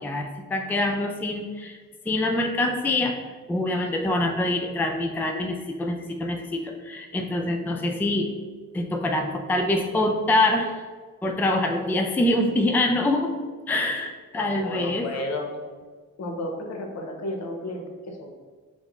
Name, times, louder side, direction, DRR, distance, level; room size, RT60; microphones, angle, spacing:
voice 1, 0.0-1.8 2.1-3.1 3.5-8.3 8.7-10.7 11.2-13.3 13.7-15.1, left 1 dB, 5° left, 3 dB, 0.3 m, -25 dB
voice 2, 14.3-15.6 16.2-18.3, left 1 dB, 65° left, 2 dB, 0.8 m, -33 dB
5.2 x 2.0 x 3.5 m, 1.4 s
cardioid pair, 80°, 29 cm